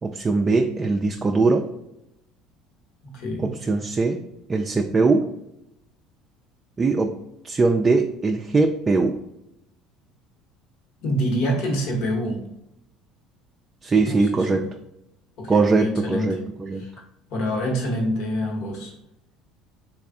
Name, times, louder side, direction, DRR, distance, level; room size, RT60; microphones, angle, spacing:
voice 1, 0.0-1.7 3.4-4.2 4.5-5.3 6.8-7.2 7.4-9.2 13.8-14.7 15.5-16.9, right 3 dB, 25° right, 3 dB, 0.3 m, -21 dB
voice 2, 3.0-3.5 11.0-12.4 14.0-14.6 15.4-16.4 16.8-16.9 17.3-18.9, equal, 70° left, 0 dB, 1.1 m, -26 dB
3.2 x 2.4 x 3.6 m, 0.83 s
supercardioid pair, 80°, 0 cm